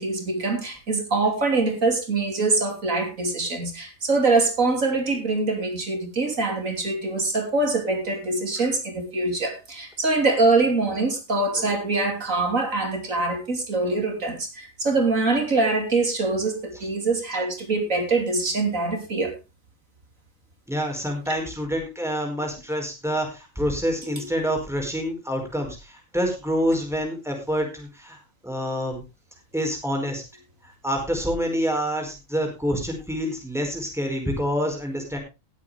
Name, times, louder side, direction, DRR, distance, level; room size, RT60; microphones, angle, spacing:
voice 1, 0.0-19.3, right 3 dB, 80° right, 3 dB, 3.3 m, -24 dB
voice 2, 20.7-28.2 28.4-29.0 29.5-30.2 30.6-35.2, equal, ahead, 1 dB, 4.8 m, -27 dB
18.5 x 8.3 x 3.4 m, 0.27 s
omnidirectional pair, 1.4 m